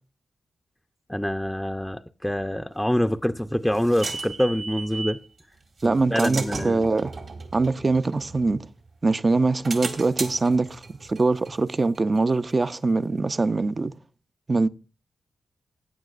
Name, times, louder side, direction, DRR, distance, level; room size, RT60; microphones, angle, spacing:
voice 1, 1.1-5.2 5.8-6.8, equal, 5° left, 0.5 m, -26 dB
sound 1, 3.1-5.3 5.8-8.9 9.3-12.8, right 3 dB, 65° right, 2.0 m, -36 dB
voice 2, 5.8-7.1 7.5-8.7 9.0-13.9 14.5-14.7, right 3 dB, 45° right, 0.5 m, -23 dB
15.5 x 9.0 x 2.4 m
supercardioid pair, 40°, 0 cm